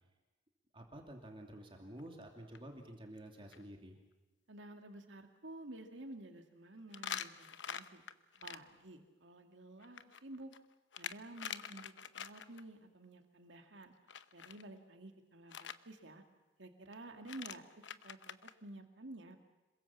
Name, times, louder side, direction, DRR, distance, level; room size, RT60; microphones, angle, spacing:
voice 1, 0.7-4.0, right 1 dB, 30° right, 2 dB, 2.7 m, -50 dB
sound 1, 2.0-2.2 2.6-2.7 3.2-3.3 3.5-3.6 6.9-8.6 9.8-12.6 14.1-14.6 15.5-15.8 16.9-17.0 17.2-18.5, left 8 dB, 75° left, 0.9 m, -45 dB
voice 2, 4.5-8.0 8.4-10.5 11.0-13.9 14.3-16.2 16.6-19.4, right 2 dB, 85° right, 4 dB, 2.3 m, -52 dB
27.0 x 22.0 x 7.3 m, 1.1 s
head